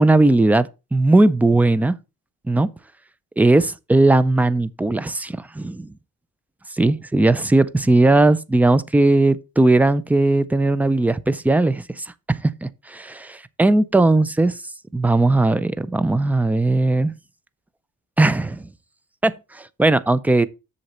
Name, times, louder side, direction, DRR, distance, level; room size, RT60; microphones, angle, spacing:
voice 1, 0.0-2.0 2.5-2.7 3.4-5.9 6.8-14.6 14.9-17.1 18.2-18.7 19.2-20.5, right 2 dB, 5° right, 0.4 m, -18 dB
8.0 x 7.0 x 4.2 m
cardioid pair, 155°, 32 cm